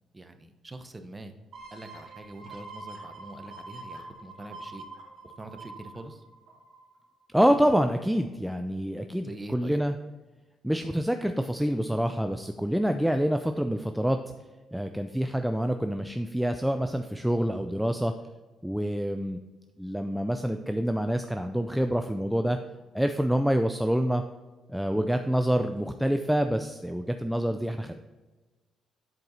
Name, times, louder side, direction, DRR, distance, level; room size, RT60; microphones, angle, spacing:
voice 1, 0.1-1.3 1.7-4.9 5.2-6.2 9.2-9.8, right 2 dB, 20° right, 7 dB, 0.8 m, -44 dB
sound 1, 1.5-7.0 7.5-7.6, right 2 dB, 60° right, 2.4 m, -45 dB
voice 2, 7.3-9.9 10.6-14.2 14.7-18.1 18.6-19.4 19.8-22.6 22.9-24.2 24.7-28.0, equal, 5° right, 7 dB, 0.4 m, -27 dB
7.9 x 4.5 x 4.0 m, 1.2 s
cardioid pair, 90°, 0 cm